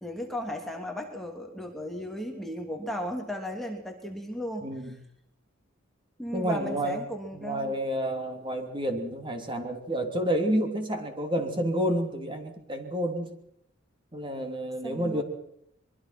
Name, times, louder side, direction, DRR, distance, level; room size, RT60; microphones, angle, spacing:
voice 1, 0.0-5.0 6.2-7.7 14.8-15.2, equal, ahead, 2 dB, 2.8 m, -35 dB
voice 2, 4.6-5.0 6.3-7.0 7.3-13.3 14.1-15.2, equal, 25° right, 5 dB, 3.3 m, -29 dB
24.0 x 23.0 x 6.1 m, 0.73 s
head